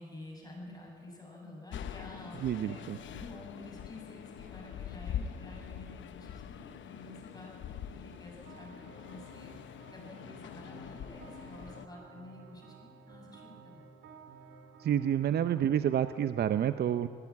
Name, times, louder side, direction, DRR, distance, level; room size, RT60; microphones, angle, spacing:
voice 1, 0.0-9.5 9.9-13.9, left 1 dB, 20° left, -1 dB, 7.4 m, -50 dB
sound 1, 1.7-11.9, left 9 dB, 70° left, 1.0 m, -44 dB
voice 2, 2.4-3.0 14.8-17.1, right 10 dB, 55° right, 11 dB, 0.6 m, -29 dB
sound 2, 8.4-16.2, right 4 dB, 85° right, 2.6 m, -54 dB
19.5 x 17.0 x 8.7 m, 2.5 s
cardioid pair, 90°, 20 cm